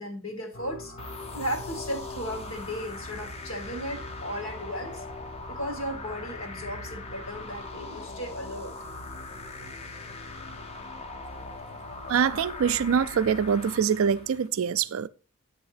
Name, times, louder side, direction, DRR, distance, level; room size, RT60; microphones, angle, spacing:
voice 1, 0.0-5.0 5.5-8.7, equal, 70° left, 2.0 m, -36 dB
sound 1, 0.5-13.2, left 1 dB, 50° left, 1.5 m, -46 dB
sound 2, 1.0-14.5, left 3 dB, 30° left, 0.6 m, -41 dB
voice 2, 12.1-15.1, right 7 dB, 65° right, 0.4 m, -24 dB
8.8 x 3.5 x 4.8 m
head